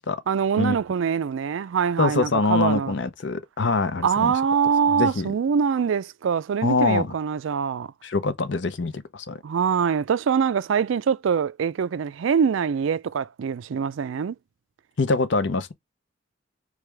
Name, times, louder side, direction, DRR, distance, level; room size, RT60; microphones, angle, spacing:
voice 1, 0.3-2.9 4.0-7.9 9.4-14.4, right 7 dB, 80° right, 0.4 m, -24 dB
voice 2, 2.0-4.3 5.0-5.3 6.6-7.1 8.0-9.4 15.0-15.7, left 3 dB, 65° left, 0.7 m, -24 dB
4.8 x 3.2 x 3.3 m
head